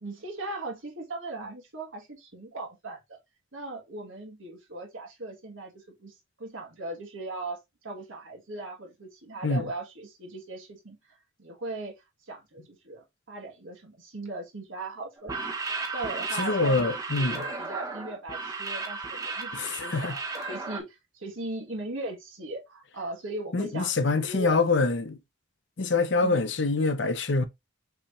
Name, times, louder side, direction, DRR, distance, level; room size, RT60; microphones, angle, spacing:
voice 1, 0.0-3.2 3.5-11.9 12.3-15.6 15.9-24.8 26.2-26.4, right 2 dB, 85° right, 1.9 m, -39 dB
sound 1, 15.2-20.8, right 4 dB, 20° right, 0.9 m, -34 dB
voice 2, 16.4-17.4 19.5-20.2 23.5-25.2 25.8-27.5, left 3 dB, 65° left, 0.7 m, -25 dB
5.7 x 3.3 x 2.6 m
head